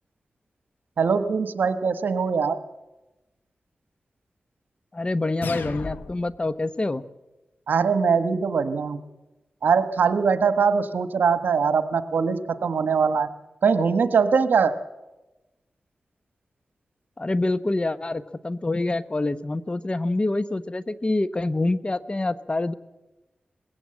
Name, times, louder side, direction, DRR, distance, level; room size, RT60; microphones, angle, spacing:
voice 1, 1.0-2.6 7.7-9.0 9.6-13.3 13.6-14.7, right 5 dB, 85° right, 11 dB, 1.1 m, -22 dB
voice 2, 4.9-7.0 17.2-22.7, left 2 dB, 35° left, 14 dB, 0.9 m, -26 dB
sound 1, 5.4-6.4, left 4 dB, 90° left, 1.1 m, -34 dB
20.5 x 16.5 x 7.7 m, 1.0 s
cardioid pair, 45°, 3 cm